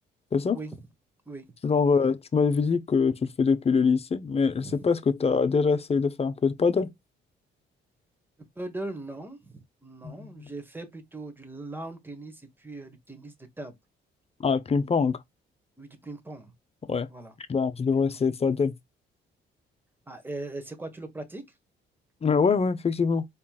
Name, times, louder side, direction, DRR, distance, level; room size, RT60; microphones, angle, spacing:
voice 1, 1.6-6.9 10.0-10.5 14.4-15.2 16.9-17.1 17.5-18.8 22.2-23.2, left 5 dB, 30° left, 0.7 m, -24 dB
voice 2, 4.6-4.9 8.6-13.7 15.8-16.5 17.1-17.3 17.9-18.2 20.1-21.4, right 2 dB, 10° right, 1.2 m, -40 dB
4.4 x 3.0 x 2.3 m
cardioid pair, 90°, 20 cm